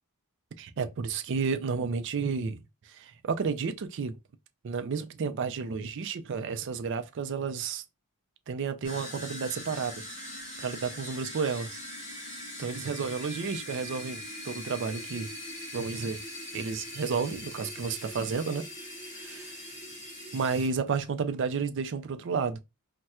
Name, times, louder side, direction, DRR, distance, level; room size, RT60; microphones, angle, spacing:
voice 1, 0.6-4.2 4.6-7.8 8.5-10.0 10.6-11.8 12.6-15.3 15.7-16.2 16.5-18.7 19.2-19.5 20.3-22.6, right 5 dB, 55° right, 0.4 m, -31 dB
sound 1, 8.8-20.7, left 1 dB, 35° left, 1.8 m, -41 dB
4.2 x 2.1 x 2.3 m
head